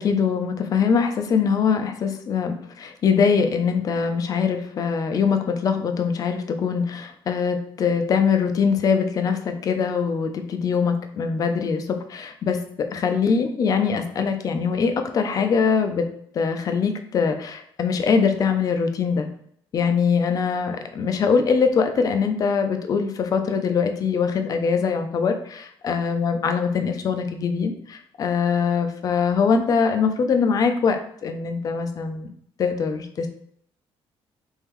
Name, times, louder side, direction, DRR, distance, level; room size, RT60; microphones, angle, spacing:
voice 1, 0.0-12.6 12.9-16.0 16.3-19.3 19.7-32.3 32.6-33.3, left 6 dB, 35° left, 6 dB, 0.5 m, -22 dB
3.7 x 3.5 x 3.0 m, 0.68 s
cardioid pair, 170°, 10 cm